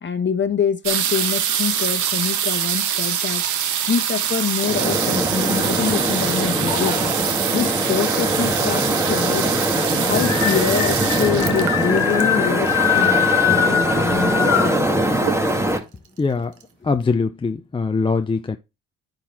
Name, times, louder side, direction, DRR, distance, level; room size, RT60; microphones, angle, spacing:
voice 1, 0.0-3.4 3.9-7.2 7.5-9.7 10.0-14.9, left 7 dB, 40° left, 1.2 m, -25 dB
sound 1, 0.8-13.4 14.2-14.3 14.5-14.9 15.2-15.8 16.3-16.4 16.6-16.7, right 9 dB, 75° right, 1.2 m, -25 dB
sound 2, 4.6-15.8, right 1 dB, 10° right, 1.7 m, -22 dB
sound 3, 4.7-6.1 6.7-7.3 8.3-8.4 8.6-8.7 9.1-14.8, left 9 dB, 65° left, 1.2 m, -23 dB
voice 2, 16.2-16.5 16.8-18.6, left 4 dB, 15° left, 0.5 m, -22 dB
9.9 x 4.0 x 4.4 m
cardioid pair, 90°, 30 cm